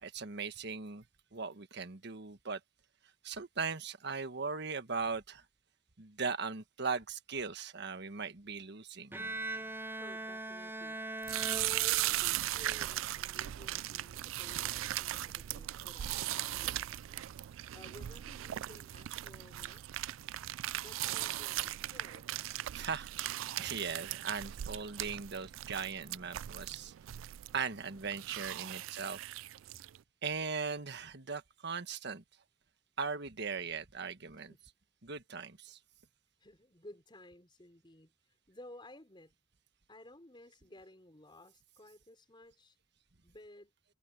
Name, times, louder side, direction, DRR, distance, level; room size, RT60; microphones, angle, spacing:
voice 1, 0.0-1.0 1.3-2.6 3.2-5.4 6.0-9.1 22.5-26.9 27.5-29.2 30.2-32.2 33.0-34.5 35.0-35.8, right 5 dB, 60° right, 1.4 m, -39 dB
Bowed string instrument, 9.1-12.5, right 2 dB, 10° right, 0.7 m, -41 dB
voice 2, 9.7-11.0 11.4-17.1 17.4-20.4 20.8-22.3 28.6-29.0 34.4-34.7 36.4-39.3 39.9-42.8 43.2-43.7, left 1 dB, 25° left, 5.6 m, -56 dB
sound 1, 11.2-30.0, right 14 dB, 85° right, 0.3 m, -38 dB
head